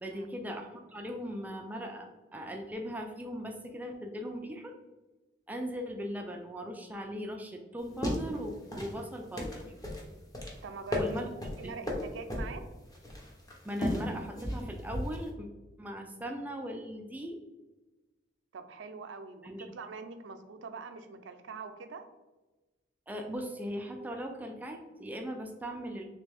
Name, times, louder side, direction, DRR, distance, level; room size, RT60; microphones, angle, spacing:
voice 1, 0.0-4.7 5.5-9.6 10.9-11.3 11.6-12.0 13.6-15.5 15.8-17.4 19.4-19.7 23.1-26.0, equal, 10° right, 2 dB, 0.3 m, -39 dB
sound 1, 7.8-15.3, left 1 dB, 20° left, 0.7 m, -36 dB
voice 2, 10.6-11.2 11.6-12.7 18.5-22.0, right 4 dB, 85° right, 8 dB, 0.4 m, -44 dB
3.3 x 3.1 x 3.3 m, 1.1 s
head